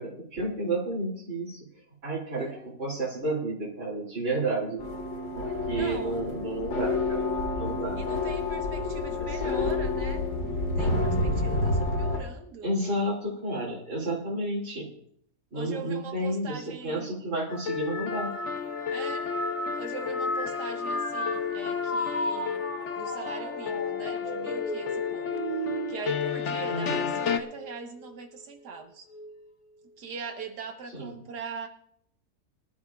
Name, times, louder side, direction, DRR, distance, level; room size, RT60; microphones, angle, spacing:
voice 1, 0.0-1.6 2.0-4.8 5.3-7.3 7.6-8.0 9.2-9.7 12.6-14.9 15.5-18.3 26.7-27.1 30.9-31.1, right 2 dB, 45° right, -7 dB, 3.2 m, -31 dB
voice 2, 2.4-2.8 5.7-6.2 8.0-12.7 15.5-17.1 18.9-19.3 19.8-22.6 23.0-25.3 25.9-29.1 30.0-31.7, right 5 dB, 85° right, 4 dB, 1.9 m, -41 dB
sound 1, 4.8-12.2, left 2 dB, 85° left, 2.7 m, -29 dB
sound 2, 17.5-27.1 27.6-28.1 29.1-29.5, equal, 20° left, 1.1 m, -35 dB
sound 3, 17.7-27.4, left 7 dB, 55° left, 1.0 m, -32 dB
24.0 x 12.0 x 2.4 m, 0.69 s
omnidirectional pair, 1.7 m